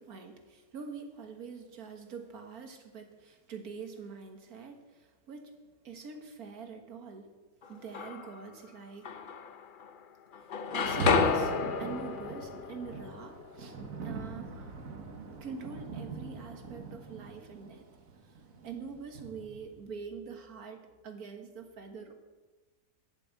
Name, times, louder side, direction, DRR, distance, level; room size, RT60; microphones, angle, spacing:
voice 1, 0.0-5.5 5.8-7.3 7.7-9.1 10.7-11.5 11.8-14.8 15.3-17.9 18.3-22.1, right 5 dB, 85° right, 5 dB, 1.9 m, -45 dB
sound 1, 7.6-8.5 9.0-10.1 10.3-14.3, left 5 dB, 50° left, 0.6 m, -32 dB
Rain, 10.7-19.8, right 4 dB, 70° right, 1.6 m, -41 dB
11.5 x 6.9 x 8.3 m, 1.2 s
omnidirectional pair, 1.5 m